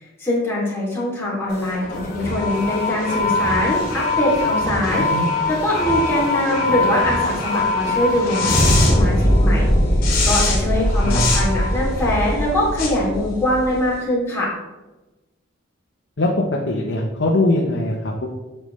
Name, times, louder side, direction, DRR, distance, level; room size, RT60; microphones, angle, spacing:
voice 1, 0.2-5.1 5.5-9.7 10.2-14.5, left 1 dB, 10° left, -7 dB, 2.8 m, -22 dB
sound 1, 1.5-13.9, left 1 dB, 45° left, 2.5 m, -21 dB
voice 2, 5.0-5.3 11.0-11.2 16.2-16.3 16.7-18.3, left 2 dB, 65° left, -1 dB, 0.9 m, -21 dB
8.8 x 6.7 x 3.2 m, 1.1 s
head